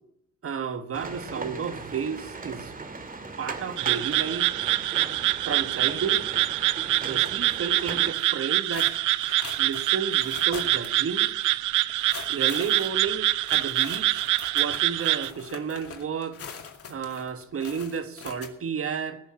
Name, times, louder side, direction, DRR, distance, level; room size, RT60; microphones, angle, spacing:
voice 1, 0.4-2.7 3.4-4.5 5.4-6.2 7.0-9.0 9.6-11.3 12.3-14.2 14.5-16.4 16.9-19.2, right 6 dB, 50° right, 1.4 m, -32 dB
sound 1, 0.9-8.1, right 3 dB, 30° right, 2.4 m, -39 dB
sound 2, 3.8-15.3, right 16 dB, 80° right, 0.6 m, -25 dB
sound 3, 8.7-11.0 11.2-11.4 11.9-18.5, left 6 dB, 50° left, 2.3 m, -42 dB
20.0 x 6.9 x 8.7 m
cardioid pair, 90°, 30 cm